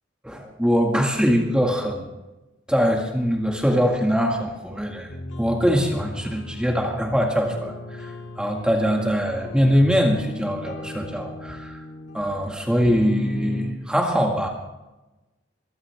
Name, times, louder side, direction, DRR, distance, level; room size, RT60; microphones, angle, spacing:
voice 1, 0.2-2.1 2.7-5.1 5.4-11.8 12.1-14.5, equal, 5° right, 0 dB, 1.9 m, -22 dB
sound 1, 5.1-13.7, left 1 dB, 65° left, 1.9 m, -35 dB
23.5 x 15.5 x 3.5 m, 1.0 s
head